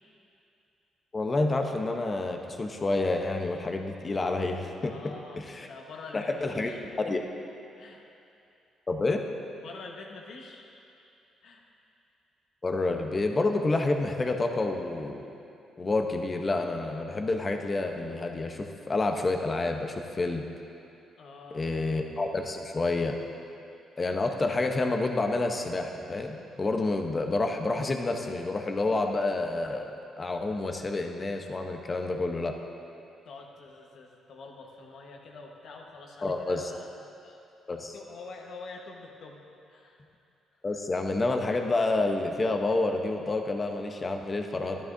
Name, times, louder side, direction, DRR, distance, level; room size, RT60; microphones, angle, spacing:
voice 1, 1.1-5.7 6.1-6.7 7.0-7.2 8.9-9.2 12.6-15.3 15.8-20.4 21.5-23.2 24.0-32.6 36.2-36.7 37.7-37.9 40.6-44.8, left 2 dB, 30° left, 4 dB, 0.8 m, -29 dB
voice 2, 4.8-6.8 7.8-8.0 9.5-10.7 11.4-11.7 21.2-21.7 33.2-37.4 37.7-39.4 39.7-40.0 40.7-40.8, left 3 dB, 70° left, 1 dB, 1.2 m, -46 dB
12.5 x 11.5 x 2.7 m, 2.7 s
cardioid pair, 90°, 0 cm